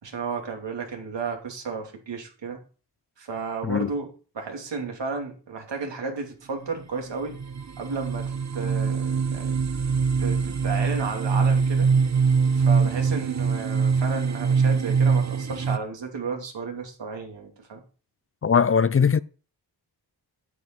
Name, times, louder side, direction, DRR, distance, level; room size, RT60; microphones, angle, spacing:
voice 1, 0.0-2.6 3.2-7.4 7.8-9.6 10.2-11.9 12.5-17.8, right 4 dB, 85° right, 2.8 m, -33 dB
sound 1, 6.8-6.9 7.3-15.8, right 5 dB, 40° right, 0.9 m, -23 dB
voice 2, 18.4-19.2, left 6 dB, 35° left, 0.4 m, -20 dB
9.5 x 7.8 x 4.5 m
wide cardioid pair, 80°, 42 cm